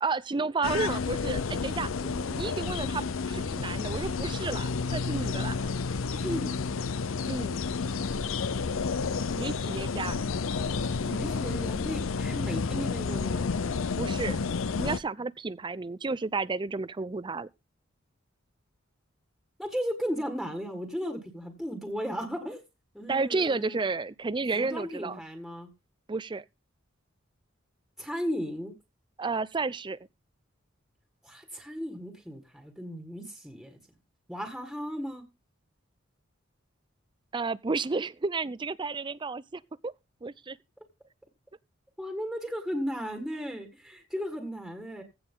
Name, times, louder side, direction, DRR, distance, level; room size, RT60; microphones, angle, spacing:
voice 1, 0.0-1.9 2.4-5.6 7.3-7.6 9.4-10.3 14.0-14.4 14.8-17.5 23.1-25.2 26.1-26.4 29.2-30.0 37.3-39.9 40.2-40.6, right 4 dB, 25° right, 0.5 m, -32 dB
sound 1, 0.6-15.0, left 4 dB, 75° left, 0.6 m, -30 dB
voice 2, 2.0-2.5 6.1-6.8 11.0-13.5 19.6-22.6 22.9-23.8 24.5-25.7 28.0-28.7 31.2-33.8 34.3-35.2 42.0-45.0, equal, ahead, 1.8 m, -36 dB
15.5 x 6.9 x 3.8 m
head